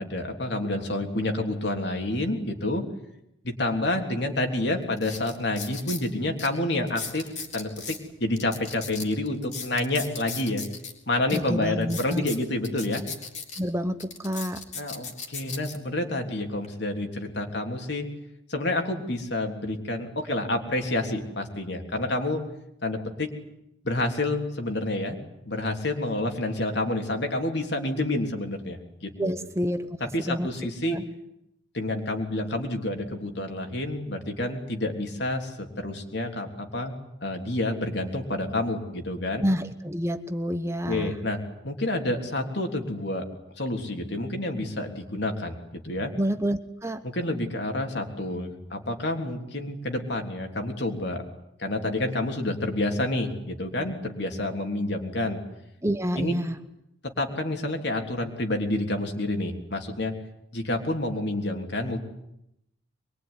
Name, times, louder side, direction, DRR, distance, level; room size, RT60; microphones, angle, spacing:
voice 1, 0.0-2.8 3.4-10.6 11.1-13.0 14.7-18.1 18.5-22.4 22.8-23.3 23.8-25.2 25.4-29.3 30.1-31.0 31.7-36.9 37.2-39.4 40.9-41.4 41.6-43.2 43.6-45.6 45.8-46.1 47.0-51.2 51.6-55.4 56.2-56.3 57.0-60.1 60.5-62.0, left 1 dB, 60° left, 4 dB, 3.4 m, -29 dB
sound 1, 4.3-4.4 4.9-6.0 6.4-6.5 6.9-8.0 8.4-10.9 11.3-11.4 11.8-13.6 14.0-15.8 16.4-16.7, left 5 dB, 40° left, 3.6 m, -37 dB
voice 2, 11.3-12.2 13.6-14.6 29.2-29.9 30.3-30.5 30.9-31.0 39.4-41.1 46.2-47.0 55.8-56.6, equal, 15° right, 9 dB, 1.0 m, -28 dB
24.0 x 22.5 x 9.9 m, 0.82 s
head